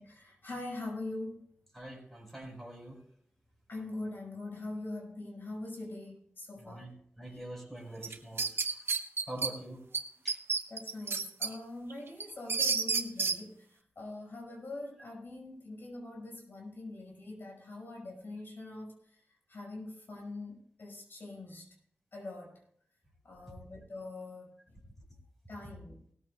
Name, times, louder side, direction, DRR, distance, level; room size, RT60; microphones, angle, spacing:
voice 1, 0.0-1.5 3.7-6.9 10.7-21.8 22.1-22.6 23.2-24.9 25.5-26.0, left 2 dB, 60° left, -1 dB, 5.6 m, -43 dB
voice 2, 1.7-3.0 6.6-8.8 9.3-9.8 10.2-10.4, right 1 dB, 5° left, -1 dB, 5.0 m, -45 dB
sound 1, 8.0-9.5 9.9-10.0 10.3-11.5 11.9-13.4, right 5 dB, 70° right, 0.9 m, -30 dB
18.5 x 13.5 x 2.4 m, 0.68 s
wide cardioid pair, 70°, 4 cm